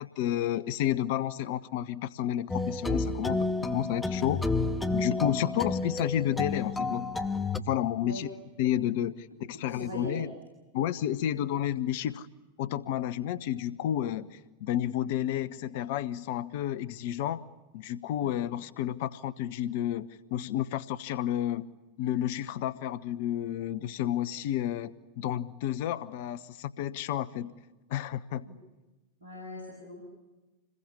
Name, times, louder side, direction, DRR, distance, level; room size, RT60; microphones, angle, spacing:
voice 1, 0.0-4.4 4.9-7.1 7.6-8.3 8.6-10.3 10.7-12.3 12.6-17.4 17.7-21.7 22.0-27.5 27.9-28.5, left 11 dB, 50° left, 16 dB, 0.8 m, -31 dB
sound 1, 2.5-7.6, left 3 dB, 10° left, 1.3 m, -30 dB
voice 2, 9.6-10.2 18.2-18.3 28.5-28.6 29.2-30.0, equal, 75° right, 1 dB, 7.5 m, -41 dB
27.0 x 21.5 x 9.9 m, 1.1 s
figure-of-eight pair, 90°, 0 cm